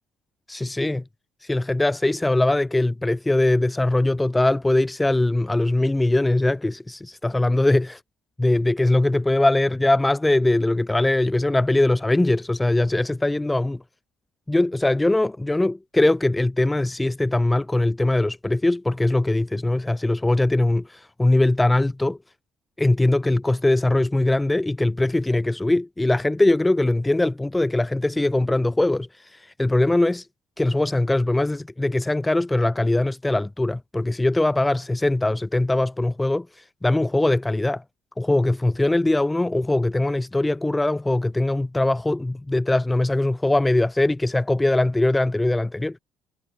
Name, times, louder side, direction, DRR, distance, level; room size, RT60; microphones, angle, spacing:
voice 1, 0.5-1.0 1.4-8.0 8.4-13.8 14.5-22.2 22.8-30.3 30.6-37.8 38.2-46.0, left 2 dB, 10° left, 3.2 m, -21 dB
supercardioid pair, 85°, 0 cm